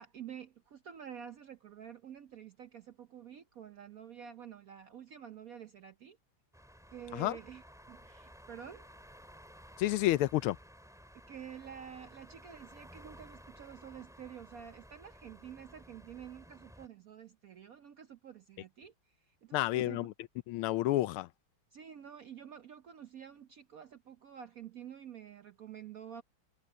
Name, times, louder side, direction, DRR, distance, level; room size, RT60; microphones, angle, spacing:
voice 1, 0.0-6.2 6.9-7.6 7.9-8.9 11.3-20.1 21.7-26.2, right 8 dB, 65° right, 0.8 m, -49 dB
sound 1, 6.5-16.9, equal, ahead, 3.4 m, -55 dB
voice 2, 9.8-10.6 19.5-20.1 20.5-21.3, left 15 dB, 85° left, 1.5 m, -30 dB
omnidirectional pair, 2.3 m